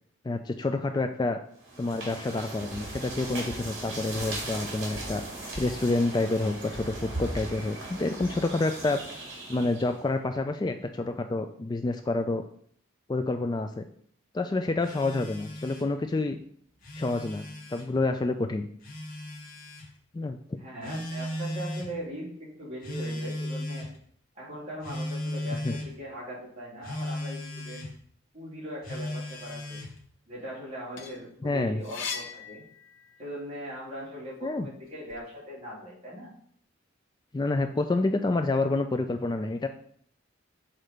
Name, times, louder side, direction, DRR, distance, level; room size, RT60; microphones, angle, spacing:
voice 1, 0.2-1.4 1.8-5.2 5.6-9.0 9.5-12.4 13.1-13.9 14.3-16.4 16.9-17.4 17.7-18.7 20.1-20.6 25.6-25.7 31.4-31.8 34.4-34.7 37.3-39.7, left 2 dB, 20° left, 7 dB, 0.3 m, -28 dB
sound 1, 1.6-10.0, right 2 dB, 60° right, 2.4 m, -38 dB
Telephone, 14.8-15.9 16.7-17.9 18.8-19.9 20.8-21.9 22.8-24.0 24.8-25.9 26.8-27.9 28.8-30.0, left 1 dB, 45° left, 1.6 m, -36 dB
voice 2, 20.6-23.9 24.3-27.8 28.3-29.8 30.3-32.6 33.2-36.3, equal, 35° right, -7 dB, 3.1 m, -40 dB
sound 2, 30.7-33.4 33.8-35.2, left 6 dB, 70° left, 0.9 m, -40 dB
6.5 x 4.4 x 5.2 m, 0.62 s
head